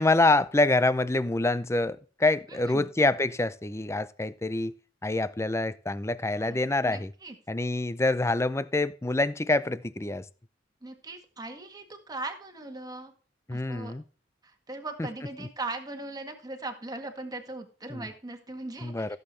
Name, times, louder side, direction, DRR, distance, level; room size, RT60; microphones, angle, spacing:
voice 1, 0.0-4.7 5.0-7.1 7.5-10.2 13.5-14.0 15.0-15.1 17.9-18.0 18.8-19.2, left 2 dB, 15° left, 0.5 m, -26 dB
voice 2, 2.5-2.9 6.4-7.4 10.8-13.1 13.5-13.9 14.4-19.2, right 2 dB, 20° right, 1.8 m, -39 dB
15.5 x 7.8 x 3.2 m
head